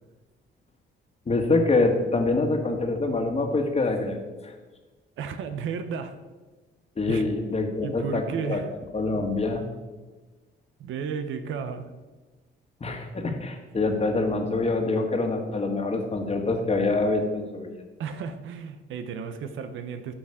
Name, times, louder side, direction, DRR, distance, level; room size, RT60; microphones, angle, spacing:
voice 1, 1.3-4.2 4.4-4.5 7.0-8.6 8.9-9.6 12.8-17.8, left 3 dB, 30° left, 4 dB, 1.6 m, -25 dB
voice 2, 5.2-6.2 7.1-7.2 7.8-8.7 10.8-11.9 18.0-20.1, right 6 dB, 80° right, 9 dB, 0.9 m, -33 dB
11.5 x 6.2 x 5.0 m, 1.3 s
cardioid pair, 90°, 20 cm